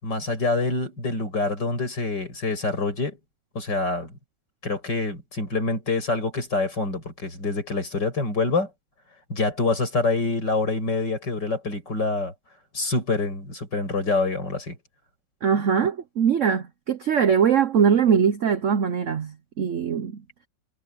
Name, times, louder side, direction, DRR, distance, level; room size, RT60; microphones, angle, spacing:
voice 1, 0.0-3.2 3.5-4.2 4.6-8.7 9.3-12.3 12.7-14.8, left 3 dB, 60° left, 8.1 m, -26 dB
voice 2, 15.4-20.2, right 7 dB, 55° right, 0.9 m, -22 dB
omnidirectional pair, 2.1 m